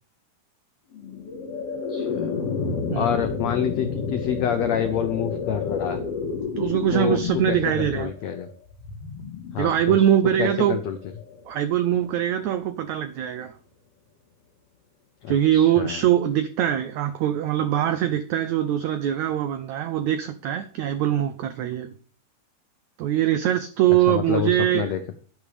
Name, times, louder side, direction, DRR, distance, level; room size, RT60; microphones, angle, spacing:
sound 1, 0.9-12.1, left 5 dB, 50° left, 2.2 m, -31 dB
voice 1, 1.9-2.3 2.9-6.0 6.9-8.5 9.5-10.0 10.4-11.0 15.2-16.0 24.1-25.1, left 9 dB, 90° left, 1.5 m, -27 dB
voice 2, 6.6-8.1 9.6-10.8 11.5-13.5 15.3-21.9 23.0-24.9, right 11 dB, 90° right, 1.6 m, -22 dB
11.0 x 11.0 x 3.4 m
omnidirectional pair, 4.2 m